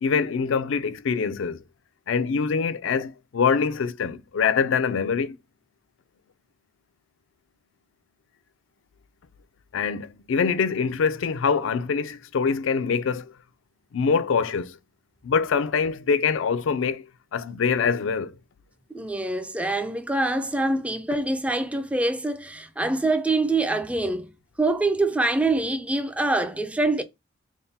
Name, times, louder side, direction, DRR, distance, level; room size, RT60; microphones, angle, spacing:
voice 1, 0.0-1.6 2.1-5.4 9.7-13.3 13.9-14.7 15.2-17.0 17.3-18.3, left 5 dB, 75° left, 0.4 m, -24 dB
voice 2, 18.9-24.3 24.6-27.0, right 2 dB, 5° right, 0.3 m, -25 dB
3.5 x 2.1 x 4.0 m
head